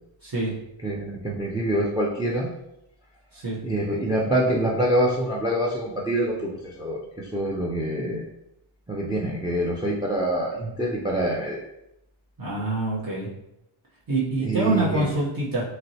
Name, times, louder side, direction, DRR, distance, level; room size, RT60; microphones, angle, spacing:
voice 1, 0.2-0.5 3.3-3.6 12.4-13.3 14.1-15.6, right 2 dB, 45° right, -7 dB, 0.9 m, -26 dB
voice 2, 0.8-2.5 3.6-8.2 8.9-11.6 14.4-15.1, right 1 dB, 10° right, -2 dB, 0.4 m, -25 dB
4.1 x 2.0 x 2.7 m, 0.84 s
wide cardioid pair, 95°, 50 cm